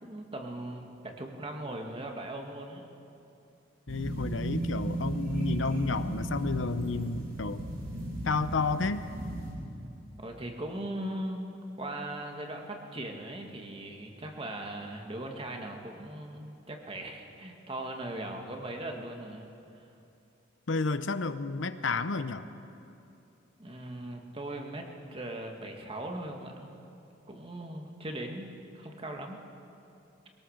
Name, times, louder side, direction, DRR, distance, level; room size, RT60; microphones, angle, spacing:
voice 1, 0.0-2.9 10.2-11.5 11.8-19.5 23.6-26.7 27.3-29.5, right 1 dB, 30° right, 2 dB, 1.8 m, -39 dB
voice 2, 3.9-7.6 8.2-9.1 20.7-22.5, left 3 dB, 85° left, 11 dB, 0.8 m, -31 dB
sound 1, 3.9-9.5, right 1 dB, 55° right, 6.2 m, -35 dB
22.0 x 18.5 x 6.6 m, 2.7 s
head